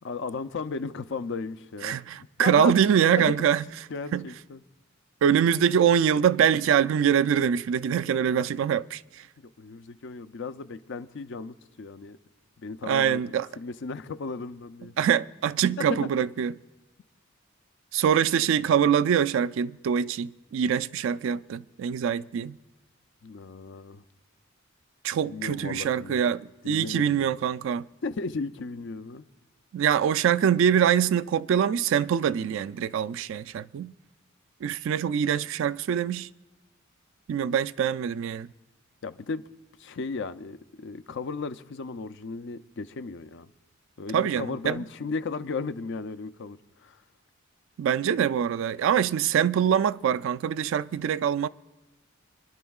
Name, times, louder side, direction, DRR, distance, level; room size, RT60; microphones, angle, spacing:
voice 1, 0.0-2.0 2.4-2.7 3.0-3.2 3.9-4.6 9.4-12.2 12.6-13.2 13.6-14.9 15.8-16.1 23.2-24.0 25.2-26.2 26.6-27.3 28.0-29.2 39.0-39.4 39.8-43.5 44.0-47.0, left 4 dB, 60° left, 0.5 m, -35 dB
voice 2, 1.8-3.6 4.1-4.3 5.2-9.0 12.8-13.5 15.0-16.5 17.9-22.6 25.0-27.9 29.7-33.9 34.6-36.3 37.3-38.5 44.1-44.8 47.8-51.5, right 8 dB, 65° right, 0.3 m, -24 dB
27.0 x 11.0 x 2.3 m
head